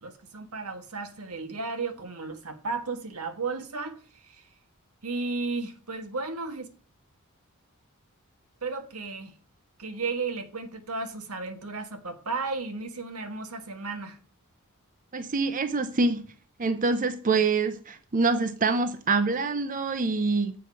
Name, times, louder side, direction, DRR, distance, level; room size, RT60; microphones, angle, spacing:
voice 1, 0.0-4.4 5.0-6.7 8.6-9.3 9.8-14.2, right 3 dB, 90° right, 1.5 m, -34 dB
voice 2, 15.1-16.2 16.6-20.5, right 3 dB, 40° right, 0.7 m, -25 dB
7.8 x 4.9 x 6.8 m
head